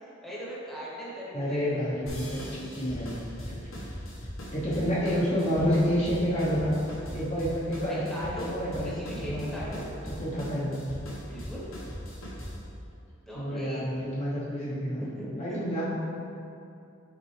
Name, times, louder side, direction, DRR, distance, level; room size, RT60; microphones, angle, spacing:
voice 1, 0.0-1.8 7.8-8.5 8.8-9.8 11.3-11.6 13.3-13.8 15.0-15.6, equal, ahead, -8 dB, 1.1 m, -39 dB
voice 2, 1.3-3.2 3.5-3.7 4.5-6.7 7.1-9.6 10.0-10.8 13.3-15.0 15.4-15.8, equal, 35° left, -8 dB, 0.8 m, -29 dB
sound 1, 2.1-12.7, equal, 80° left, 1.2 m, -40 dB
6.7 x 4.5 x 3.2 m, 2.7 s
head